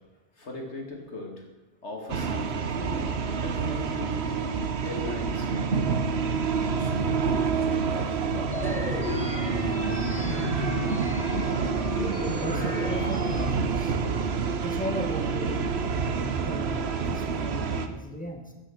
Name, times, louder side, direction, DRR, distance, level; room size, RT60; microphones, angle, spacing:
voice 1, 0.4-1.5 1.8-4.2 4.8-5.7 6.7-9.0, left 2 dB, 80° left, 1 dB, 2.8 m, -39 dB
sound 1, 2.1-17.9, right 5 dB, 70° right, 1.2 m, -28 dB
sound 2, 8.5-13.5, left 1 dB, 35° left, 1.5 m, -33 dB
voice 2, 12.3-14.2 14.6-18.5, equal, 5° left, 3 dB, 1.8 m, -38 dB
14.5 x 10.0 x 6.5 m, 1.0 s
omnidirectional pair, 1.1 m